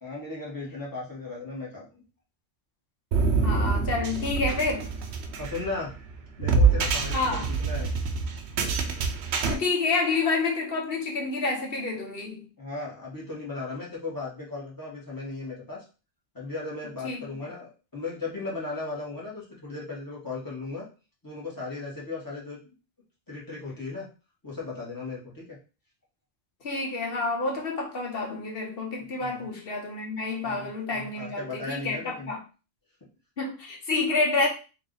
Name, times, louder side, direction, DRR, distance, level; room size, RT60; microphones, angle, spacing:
voice 1, 0.0-2.0 5.4-5.9 6.4-7.9 12.6-15.8 16.3-20.8 21.2-22.6 23.3-24.1 24.4-25.6 29.1-29.4 30.4-32.3, left 3 dB, 20° left, 1.6 m, -36 dB
sound 1, 3.1-9.5, right 4 dB, 80° right, 0.9 m, -26 dB
voice 2, 3.4-4.9 7.1-7.5 9.5-12.4 17.0-17.3 26.6-32.4 33.4-34.5, left 3 dB, 60° left, 1.2 m, -28 dB
3.2 x 2.7 x 3.9 m
omnidirectional pair, 1.1 m